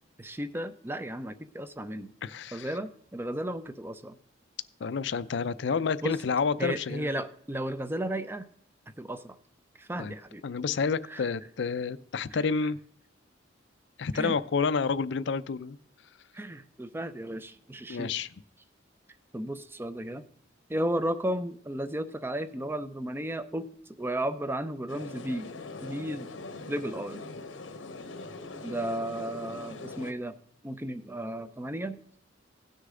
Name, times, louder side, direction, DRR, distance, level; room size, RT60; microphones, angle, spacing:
voice 1, 0.2-2.1 2.5-4.2 6.0-6.2 6.6-8.5 9.0-9.4 9.8-10.4 11.1-11.3 12.3-12.4 14.1-14.3 16.3-18.1 19.3-20.2 20.7-25.5 25.8-26.3 26.7-27.2 28.6-30.3 30.6-32.0, right 1 dB, 10° right, 12 dB, 0.5 m, -34 dB
voice 2, 2.2-2.7 4.8-7.1 10.0-10.1 10.4-12.8 14.0-15.8 17.9-18.3, left 5 dB, 65° left, 15 dB, 0.4 m, -29 dB
sound 1, 24.9-30.1, left 3 dB, 85° left, 0.9 m, -42 dB
16.5 x 6.5 x 3.7 m, 0.63 s
head